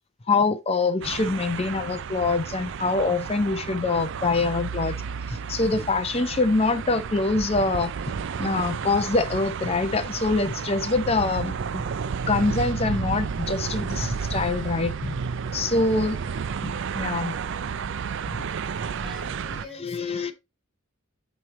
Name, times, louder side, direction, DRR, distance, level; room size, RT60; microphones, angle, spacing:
voice 1, 0.3-5.0 5.3-7.9 8.4-11.8 12.3-15.1 15.5-16.2 16.6-17.4 18.3-18.4 19.5-20.3, left 3 dB, 30° left, 0.6 m, -25 dB
sound 1, 1.0-19.7, right 6 dB, 60° right, 0.4 m, -32 dB
voice 2, 15.9-16.2 19.0-20.3, left 1 dB, ahead, 2.5 m, -44 dB
9.4 x 3.2 x 4.0 m
head